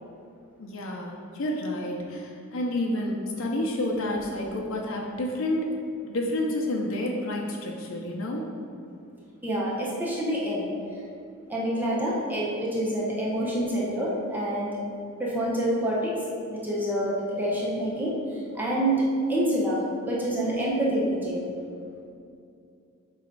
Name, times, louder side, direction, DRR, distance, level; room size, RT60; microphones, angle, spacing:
voice 1, 0.6-5.8 6.1-8.5, left 1 dB, 65° left, 0 dB, 0.6 m, -29 dB
voice 2, 9.4-10.7 11.5-14.8 15.2-16.2 16.5-18.1 18.5-21.5, right 1 dB, 10° right, -6 dB, 0.9 m, -27 dB
7.4 x 3.1 x 4.6 m, 2.5 s
head